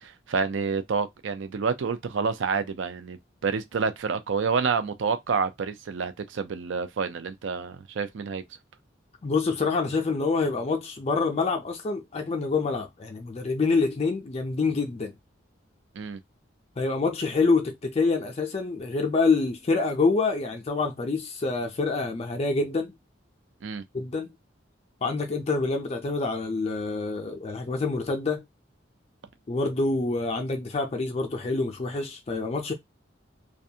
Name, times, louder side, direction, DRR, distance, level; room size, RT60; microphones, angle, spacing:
voice 1, 0.0-8.4 16.0-16.2 23.6-23.8, right 5 dB, 75° right, 0.4 m, -28 dB
voice 2, 9.2-15.1 16.8-22.9 23.9-24.3 25.0-28.4 29.5-32.7, left 3 dB, 35° left, 0.4 m, -26 dB
2.4 x 2.2 x 2.7 m
head